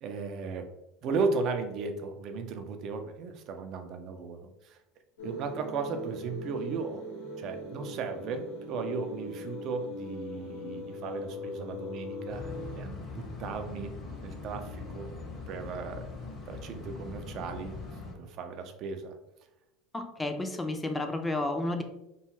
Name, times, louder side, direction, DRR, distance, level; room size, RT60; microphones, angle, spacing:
voice 1, 0.0-0.7 1.0-4.8 5.2-7.1 7.4-13.9 14.2-15.2 15.5-16.1 16.5-17.7 18.2-19.2, right 4 dB, 55° right, 6 dB, 0.4 m, -35 dB
sound 1, 5.2-12.8, left 1 dB, 85° left, 0.9 m, -40 dB
sound 2, 12.3-18.1, left 3 dB, 40° left, 0.7 m, -41 dB
voice 2, 19.9-21.8, left 2 dB, 15° left, 5 dB, 0.4 m, -31 dB
2.4 x 2.3 x 3.0 m, 0.92 s
hypercardioid pair, 80°, 0 cm